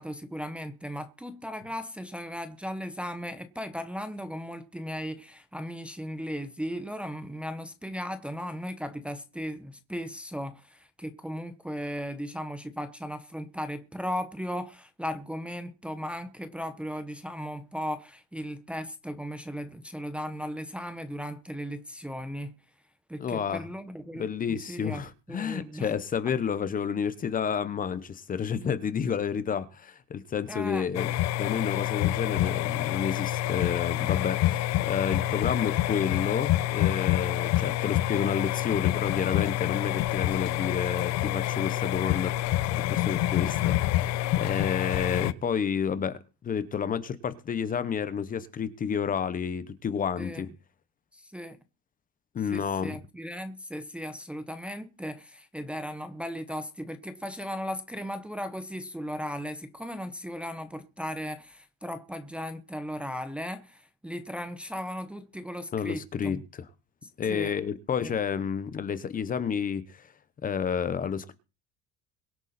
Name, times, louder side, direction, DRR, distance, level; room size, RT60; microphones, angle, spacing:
voice 1, 0.0-22.6 23.1-25.9 30.5-30.9 50.2-50.5 51.1-51.6 52.5-66.4 67.0-67.5 68.0-68.1, equal, 5° right, 0.9 m, -37 dB
voice 2, 23.2-23.6 24.1-31.1 31.4-42.4 42.9-50.5 52.3-53.0 65.7-66.4 67.2-70.1 70.4-71.3, left 7 dB, 25° left, 1.1 m, -30 dB
sound 1, 30.9-45.3, left 14 dB, 55° left, 0.8 m, -27 dB
23.0 x 8.1 x 4.4 m
cardioid pair, 150°, 32 cm